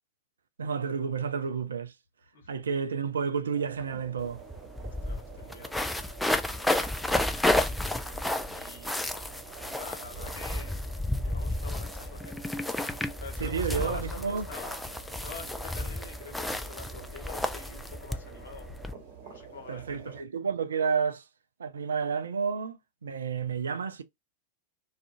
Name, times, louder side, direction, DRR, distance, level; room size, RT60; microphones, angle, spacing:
voice 1, 0.6-1.9 2.5-4.4 13.4-14.5 19.7-21.3 21.6-24.0, right 6 dB, 70° right, 0.4 m, -30 dB
sound 1, 3.5-20.2, right 7 dB, 45° right, 1.3 m, -49 dB
sound 2, 4.2-4.3 4.5-18.9, left 1 dB, 5° left, 0.3 m, -32 dB
voice 2, 5.0-6.0 6.2-7.0 8.5-9.2 9.6-10.9 11.2-12.4 13.1-18.7 19.2-20.2, left 4 dB, 65° left, 1.0 m, -46 dB
2.5 x 2.3 x 2.5 m
figure-of-eight pair, 90°, 0 cm